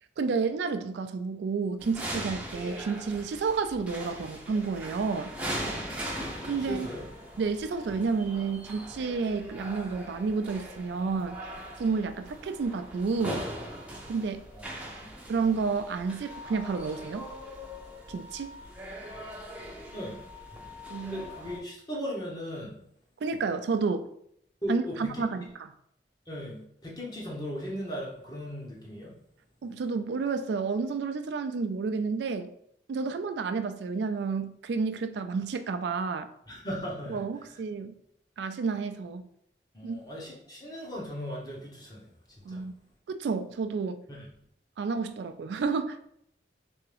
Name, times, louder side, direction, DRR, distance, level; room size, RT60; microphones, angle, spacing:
voice 1, 0.2-5.3 6.5-6.9 7.4-11.4 11.8-13.4 14.1-14.4 15.3-17.3 18.1-18.5 20.9-21.2 23.2-24.1 24.7-25.4 29.6-32.5 32.9-36.3 37.1-37.9 38.4-39.2 39.8-40.0 42.5-42.7 43.1-44.0 44.8-46.0, right 4 dB, 75° right, 9 dB, 0.3 m, -30 dB
sound 1, 1.8-21.6, equal, 5° right, 0.6 m, -40 dB
voice 2, 6.6-7.0 14.5-14.7 15.0-15.1 19.9-20.2 21.0-22.8 24.6-25.2 26.3-29.1 36.5-37.2 37.5-37.6 39.7-42.1 42.5-42.6 44.1-44.3, equal, 20° left, -4 dB, 1.0 m, -37 dB
3.5 x 3.4 x 3.3 m, 0.71 s
head